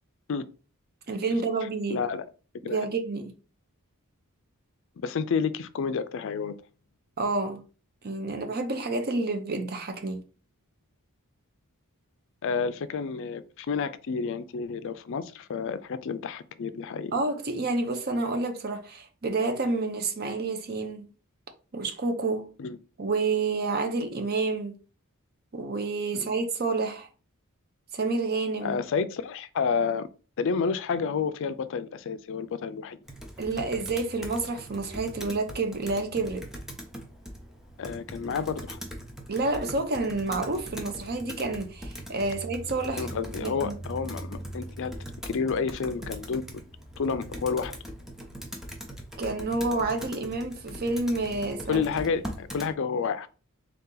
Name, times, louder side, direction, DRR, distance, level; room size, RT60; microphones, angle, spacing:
voice 1, 1.1-2.0 2.7-3.3 7.2-7.6 8.0-10.2 17.1-21.1 21.7-22.5 23.0-24.8 25.5-27.1 27.9-28.8 33.4-36.5 39.3-43.1 43.4-43.8 49.2-51.9, right 3 dB, 45° right, 0.7 m, -29 dB
voice 2, 1.9-2.2 2.6-2.9 5.0-6.5 12.4-17.1 22.6-22.8 26.1-26.3 28.6-30.1 30.4-33.0 37.8-38.8 42.9-44.9 45.3-46.5 47.0-47.7 51.7-53.3, left 5 dB, 60° left, 0.4 m, -30 dB
Computer keyboard, 33.1-52.7, equal, ahead, 0.7 m, -41 dB
3.8 x 2.8 x 3.8 m
head